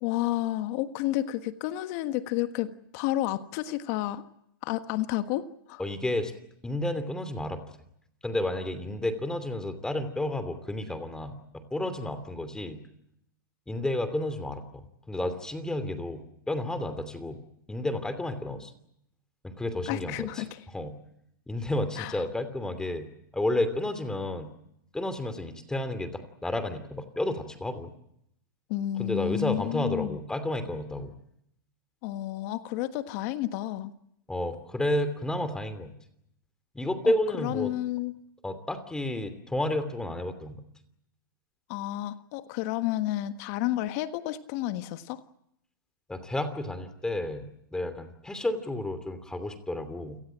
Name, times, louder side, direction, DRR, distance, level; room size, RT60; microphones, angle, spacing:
voice 1, 0.0-4.2 4.6-5.8 19.9-20.6 22.0-22.2 28.7-30.2 32.0-33.9 37.0-38.1 41.7-45.2, left 14 dB, 45° left, 11 dB, 1.5 m, -31 dB
voice 2, 5.8-6.3 6.6-7.6 8.2-12.8 13.7-17.4 17.7-18.7 19.4-20.5 20.7-20.9 21.5-23.1 23.3-24.5 24.9-27.9 29.0-31.1 34.3-35.9 36.7-37.7 38.4-40.6 46.1-50.2, left 1 dB, 5° left, 11 dB, 2.8 m, -31 dB
29.0 x 18.0 x 8.9 m, 0.77 s
hypercardioid pair, 130°, 12 cm